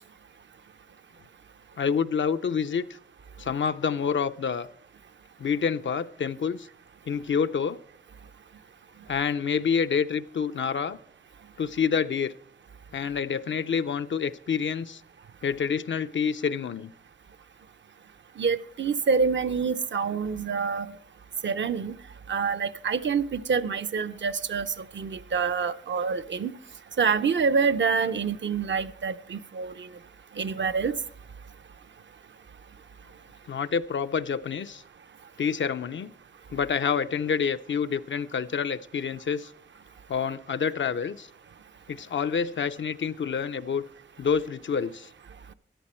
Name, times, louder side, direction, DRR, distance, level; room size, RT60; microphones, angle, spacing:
voice 1, 1.8-2.9 3.4-4.7 5.4-6.7 7.1-7.8 9.1-11.0 11.6-12.3 12.9-15.0 15.4-16.9 33.5-34.8 35.4-36.1 36.5-39.5 40.1-41.3 41.9-43.9 44.2-45.1, left 6 dB, 75° left, 0.5 m, -27 dB
voice 2, 18.4-20.9 21.4-22.0 22.3-24.7 24.9-26.5 27.0-29.9 30.4-30.9, right 5 dB, 70° right, 0.6 m, -26 dB
13.5 x 10.5 x 4.3 m
wide cardioid pair, 65°, 20 cm